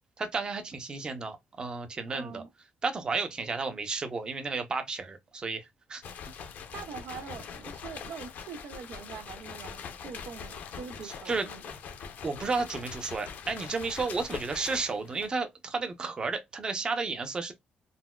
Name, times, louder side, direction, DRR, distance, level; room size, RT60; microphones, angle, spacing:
voice 1, 0.2-2.4 2.8-6.0 11.0-11.5 12.2-17.5, right 4 dB, 25° right, 0.6 m, -32 dB
voice 2, 2.1-2.5 6.7-11.6, right 6 dB, 70° right, 0.4 m, -43 dB
sound 1, 6.0-15.4, left 6 dB, 60° left, 0.6 m, -43 dB
3.9 x 2.2 x 2.2 m
cardioid pair, 150°, 3 cm